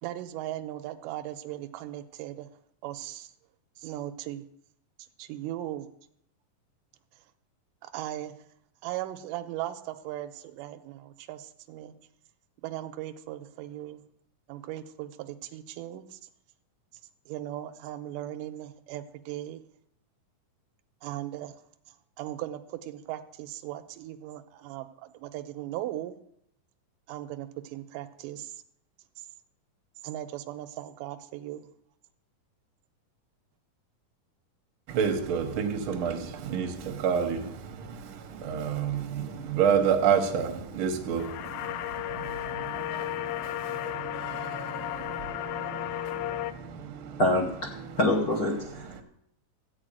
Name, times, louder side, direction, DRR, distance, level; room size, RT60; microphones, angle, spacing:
voice 1, 0.0-2.5 2.8-3.3 3.8-4.4 5.2-5.9 7.8-8.3 8.8-11.9 12.6-14.0 14.5-16.2 17.3-19.6 21.0-21.6 21.9-26.2 27.1-28.5 29.2-29.3 30.0-31.6, right 13 dB, 80° right, 2.2 m, -38 dB
voice 2, 34.9-47.2 47.7-48.0 48.8-49.0, right 7 dB, 60° right, 1.4 m, -30 dB
sound 1, 41.2-46.5, left 14 dB, 90° left, 2.4 m, -34 dB
voice 3, 47.2-47.7 48.0-48.7, left 1 dB, 70° left, 0.9 m, -24 dB
13.5 x 4.7 x 8.9 m
omnidirectional pair, 4.0 m